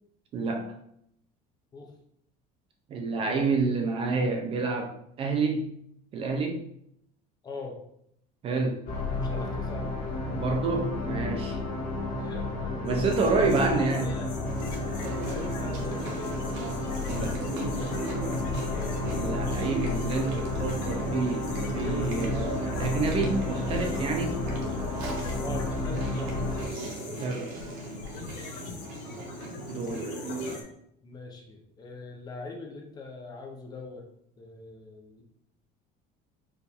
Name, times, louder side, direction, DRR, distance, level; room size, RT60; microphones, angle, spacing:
voice 1, 0.3-0.7 2.9-5.7 6.1-6.7 8.4-8.8 10.3-11.5 12.8-14.1 17.1-17.4 19.0-24.4 27.2-27.5 29.7-30.1, right 3 dB, 30° right, 3 dB, 0.5 m, -28 dB
voice 2, 7.4-7.8 9.1-10.0 11.0-11.8 12.2-12.8 13.2-14.5 14.9-16.4 18.7-19.4 25.4-26.6 31.0-34.1 34.4-35.2, left 3 dB, 20° left, 2 dB, 0.5 m, -42 dB
sound 1, 8.8-26.7, left 2 dB, 55° left, 1.5 m, -31 dB
sound 2, 12.9-30.6, left 4 dB, 80° left, 0.9 m, -44 dB
Chewing mastication, 14.5-30.6, right 2 dB, 80° right, 1.1 m, -37 dB
4.7 x 2.5 x 3.3 m, 0.72 s
cardioid pair, 170°, 19 cm